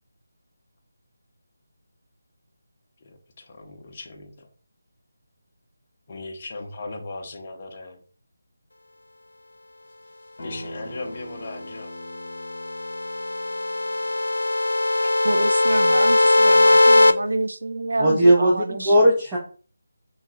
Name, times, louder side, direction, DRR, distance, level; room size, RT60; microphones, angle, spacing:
voice 1, 3.0-4.5 6.1-8.0 10.4-11.9, left 2 dB, 35° left, 0.6 m, -38 dB
Acoustic guitar, 10.4-15.6, equal, 55° left, 0.9 m, -42 dB
sound 1, 12.2-17.1, left 2 dB, 90° left, 0.3 m, -19 dB
voice 2, 15.2-19.1, right 2 dB, 75° right, 0.4 m, -28 dB
voice 3, 18.0-19.4, right 1 dB, 10° right, 0.5 m, -17 dB
3.1 x 2.3 x 2.7 m
figure-of-eight pair, 165°, 0 cm